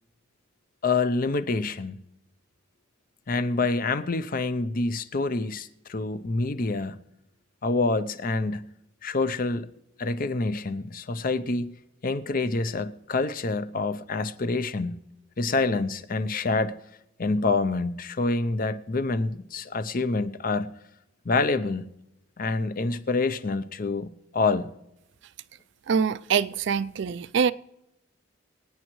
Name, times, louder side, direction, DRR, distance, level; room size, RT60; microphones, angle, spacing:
voice 1, 0.8-2.0 3.3-7.0 7.6-8.7 9.0-9.7 10.0-11.8 12.0-15.0 15.4-16.8 17.2-20.8 21.2-21.8 22.4-24.7, left 3 dB, 45° left, 0.6 m, -27 dB
voice 2, 25.9-27.5, right 6 dB, 60° right, 0.4 m, -24 dB
25.0 x 9.0 x 3.1 m
head